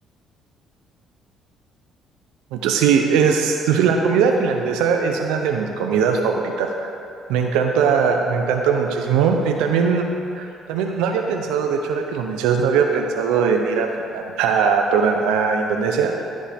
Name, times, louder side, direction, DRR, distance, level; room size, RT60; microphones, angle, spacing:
voice 1, 2.5-6.9 7.3-10.0 10.3-13.9 14.1-16.1, right 6 dB, 90° right, 3 dB, 0.6 m, -20 dB
14.0 x 5.2 x 3.5 m, 2.6 s
supercardioid pair, 75°, 0 cm